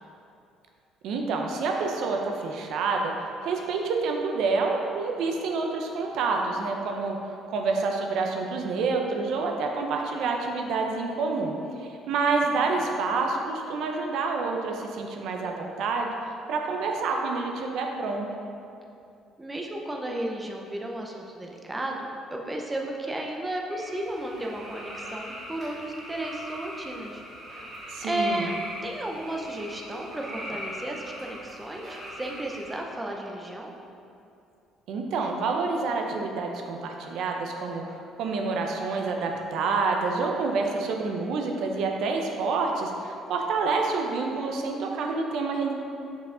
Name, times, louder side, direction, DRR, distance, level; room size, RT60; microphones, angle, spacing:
voice 1, 1.0-3.1 3.4-7.2 7.5-11.5 11.8-16.1 16.5-18.3 27.9-28.5 34.9-37.8 38.2-45.7, right 4 dB, 70° right, 2 dB, 0.6 m, -28 dB
voice 2, 19.4-27.2 28.0-28.5 28.8-33.7, right 1 dB, 10° right, 0 dB, 0.6 m, -33 dB
sound 1, 23.7-32.8, equal, 30° right, 1.4 m, -41 dB
5.3 x 5.0 x 3.8 m, 2.6 s
cardioid pair, 120°, 0 cm